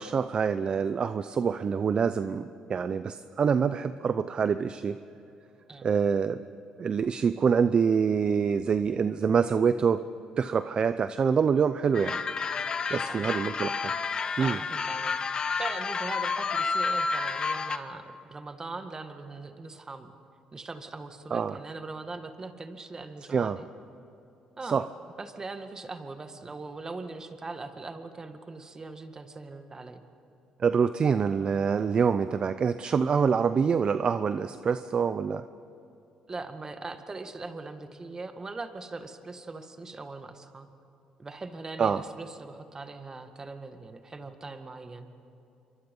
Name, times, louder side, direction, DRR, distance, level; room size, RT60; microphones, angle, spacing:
voice 1, 0.0-5.0 5.8-6.4 6.8-10.0 10.4-12.2 12.9-13.9 14.4-14.6 21.3-21.6 23.3-23.6 24.6-24.8 30.6-35.4 41.8-42.0, right 6 dB, 45° right, 12 dB, 0.6 m, -26 dB
sound 1, 11.9-17.8, left 4 dB, 40° left, 1.2 m, -30 dB
voice 2, 12.9-13.3 14.4-20.2 20.5-23.7 24.6-24.8 25.2-30.0 36.3-40.7 41.2-45.1, right 3 dB, 30° right, 7 dB, 1.9 m, -41 dB
27.0 x 23.5 x 5.5 m, 2.9 s
cardioid pair, 85°, 2 cm